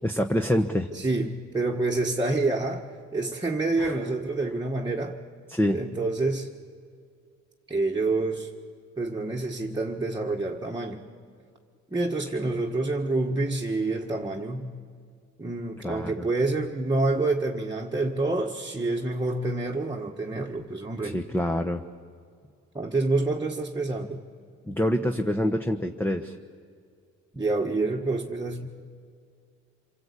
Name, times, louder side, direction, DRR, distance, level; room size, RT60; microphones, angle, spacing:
voice 1, 0.0-0.9 3.8-3.9 5.5-5.8 15.8-16.3 21.0-21.8 24.7-26.4, equal, 5° left, 4 dB, 1.1 m, -26 dB
voice 2, 0.9-5.2 5.7-6.5 7.7-8.5 9.0-11.0 11.9-14.8 15.4-21.2 22.7-24.2 27.3-28.7, right 2 dB, 15° right, -1 dB, 1.6 m, -27 dB
26.5 x 23.5 x 8.5 m, 2.2 s
cardioid pair, 90°, 30 cm